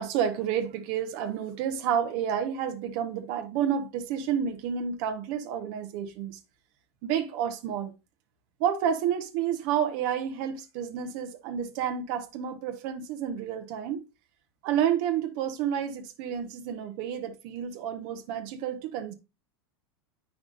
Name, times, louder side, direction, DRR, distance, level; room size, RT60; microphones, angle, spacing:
voice 1, 0.0-6.4 7.0-7.9 8.6-14.0 14.6-19.1, right 9 dB, 55° right, 1.1 m, -30 dB
8.4 x 5.8 x 2.5 m
supercardioid pair, 130°, 14 cm